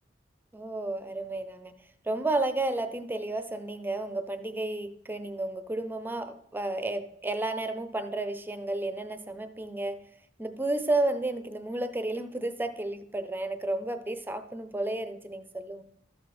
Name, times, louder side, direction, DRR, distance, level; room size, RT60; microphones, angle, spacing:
voice 1, 0.5-1.7 2.1-10.0 10.4-15.8, right 2 dB, 10° right, 9 dB, 0.7 m, -32 dB
13.5 x 6.6 x 4.3 m, 0.71 s
head